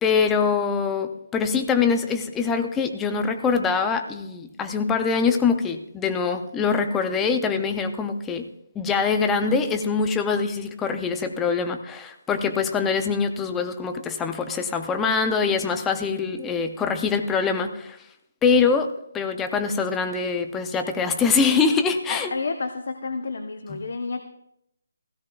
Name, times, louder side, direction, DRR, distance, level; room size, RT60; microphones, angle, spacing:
voice 1, 0.0-8.5 8.8-18.0 18.4-18.9 19.1-22.3 23.7-23.8, left 5 dB, 5° left, 7 dB, 0.5 m, -24 dB
voice 2, 22.1-24.2, left 4 dB, 50° left, 6 dB, 0.8 m, -30 dB
16.5 x 16.0 x 2.3 m, 0.79 s
hypercardioid pair, 180°, 0 cm